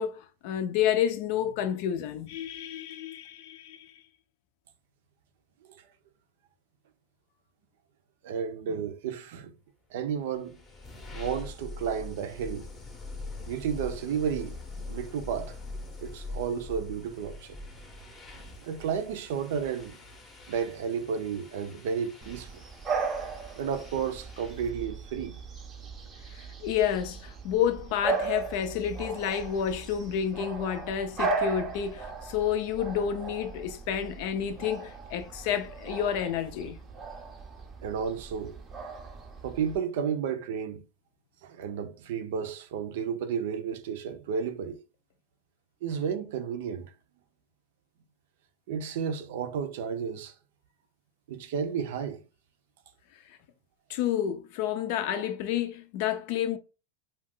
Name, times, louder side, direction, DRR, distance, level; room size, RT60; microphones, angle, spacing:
voice 1, 0.0-3.9 26.3-36.8 53.9-56.6, left 9 dB, 55° left, 0.5 m, -30 dB
voice 2, 8.2-9.5 9.9-10.6 11.1-12.7 13.4-14.6 14.9-15.6 16.0-17.6 18.3-20.0 20.5-22.6 23.6-25.4 37.8-38.5 39.4-40.8 41.4-44.8 45.8-46.9 48.7-50.3 51.3-52.2, right 7 dB, 70° right, 0.5 m, -32 dB
sound 1, 10.2-24.9, left 2 dB, 15° left, 0.7 m, -43 dB
Bark / Bird vocalization bird call bird song, 22.2-39.8, right 4 dB, 20° right, 0.6 m, -37 dB
2.4 x 2.3 x 3.6 m
supercardioid pair, 145°, 0 cm